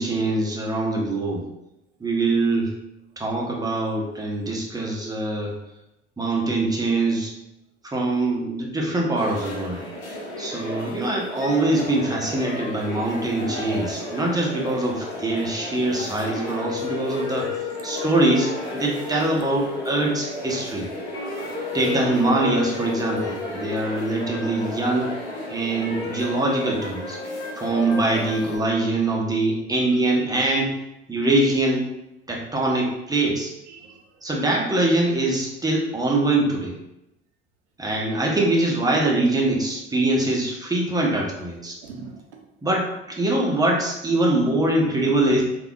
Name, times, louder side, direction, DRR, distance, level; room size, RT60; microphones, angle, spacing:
voice 1, 0.0-1.4 2.0-2.7 3.2-5.5 6.2-7.3 7.8-9.8 10.4-17.5 17.8-20.9 21.7-25.1 25.5-27.2 27.6-30.7 31.1-31.8 32.3-33.5 34.2-36.7 37.8-41.8 42.6-45.4, right 2 dB, 10° right, -2 dB, 0.8 m, -23 dB
sound 1, 9.2-28.6, left 2 dB, 70° left, 0.9 m, -32 dB
voice 2, 21.5-21.8 24.7-25.4 26.9-27.6 29.8-29.9 33.7-34.2 39.5-39.7 41.8-42.4 45.2-45.4, right 4 dB, 90° right, 3 dB, 0.5 m, -45 dB
3.4 x 2.4 x 2.2 m, 0.87 s
figure-of-eight pair, 65°, 34 cm